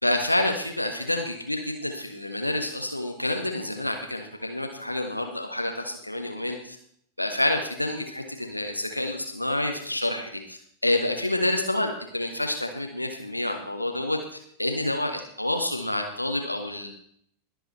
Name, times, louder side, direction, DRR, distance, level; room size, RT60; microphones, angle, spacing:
voice 1, 0.0-6.8 7.2-10.6 10.8-14.2 14.6-16.9, left 1 dB, 85° left, 4 dB, 1.6 m, -28 dB
21.0 x 7.9 x 4.3 m, 0.66 s
figure-of-eight pair, 90°, 0 cm